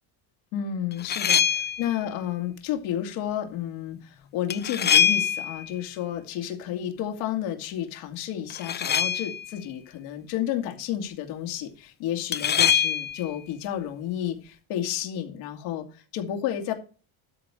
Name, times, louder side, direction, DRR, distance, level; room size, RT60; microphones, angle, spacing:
voice 1, 0.5-1.4 1.8-16.7, left 10 dB, 80° left, 4 dB, 2.4 m, -31 dB
sound 1, 0.9-1.9 4.5-5.7 8.5-9.5 12.3-13.3, left 8 dB, 20° left, 0.5 m, -24 dB
12.5 x 4.4 x 6.3 m, 0.36 s
cardioid pair, 115°, 49 cm